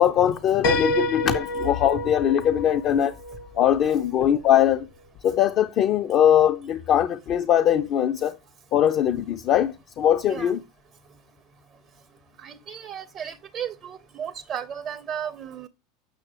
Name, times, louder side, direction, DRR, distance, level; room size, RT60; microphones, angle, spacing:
voice 1, 0.0-3.2 3.6-4.9 5.2-8.4 8.7-10.6, left 10 dB, 45° left, 0.5 m, -21 dB
Piano, 0.6-4.4, equal, 65° left, 1.4 m, -29 dB
voice 2, 12.4-15.7, right 8 dB, 40° right, 0.5 m, -34 dB
7.5 x 6.0 x 3.3 m
hypercardioid pair, 80°, 0 cm